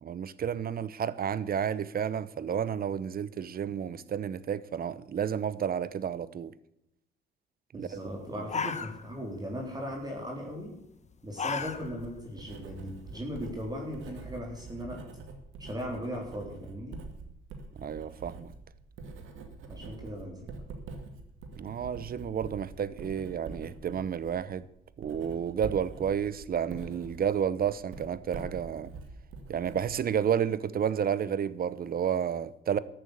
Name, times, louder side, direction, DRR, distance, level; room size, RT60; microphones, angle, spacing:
voice 1, 0.0-6.5 7.7-8.0 17.8-18.5 21.6-24.7 25.0-28.9 29.5-32.8, right 8 dB, 50° right, 0.8 m, -31 dB
voice 2, 7.7-10.7 11.2-15.0 15.6-17.0 19.7-20.5, equal, 20° right, 3.8 m, -38 dB
sound 1, 8.0-8.1 8.4-9.4 9.7-10.0 11.0-12.1 12.5-12.6 13.1-14.2, left 5 dB, 35° left, 1.2 m, -35 dB
Writing, 11.6-30.4, right 4 dB, 85° right, 2.3 m, -45 dB
14.0 x 9.0 x 8.1 m
cardioid pair, 90°, 20 cm